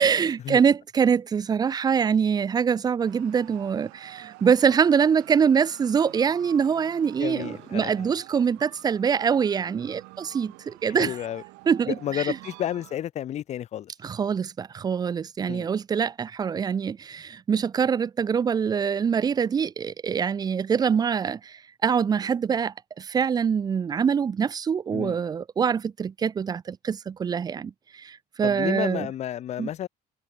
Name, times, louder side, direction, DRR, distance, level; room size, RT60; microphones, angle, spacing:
voice 1, 0.0-11.1 11.7-12.4 14.0-29.1 29.6-29.7, right 7 dB, 25° right, 0.4 m, -24 dB
sound 1, 3.0-13.0, right 26 dB, 85° right, 2.7 m, -48 dB
voice 2, 7.2-8.1 10.9-11.4 11.9-13.9 15.5-15.7 24.9-25.2 28.4-29.9, left 11 dB, 40° left, 0.5 m, -31 dB
cardioid pair, 125°, 18 cm